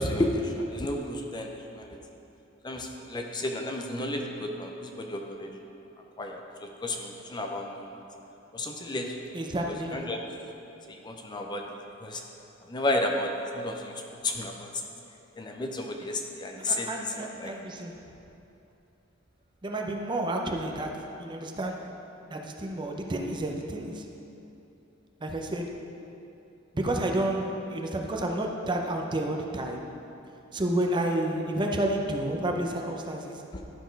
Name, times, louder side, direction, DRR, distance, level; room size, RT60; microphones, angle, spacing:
voice 1, 0.0-2.0 2.6-5.6 6.2-8.0 8.5-9.2 9.9-10.2 10.9-11.6 12.0-12.2 12.7-14.7 15.4-16.9 17.2-17.5 33.5-33.6, left 1 dB, 20° left, 2 dB, 0.5 m, -32 dB
voice 2, 9.3-10.0 16.7-17.9 19.6-20.9 21.2-21.8 22.3-24.0 25.2-25.7 26.7-29.8 30.5-33.4, right 1 dB, 25° right, 2 dB, 0.6 m, -30 dB
11.5 x 4.1 x 5.2 m, 2.9 s
head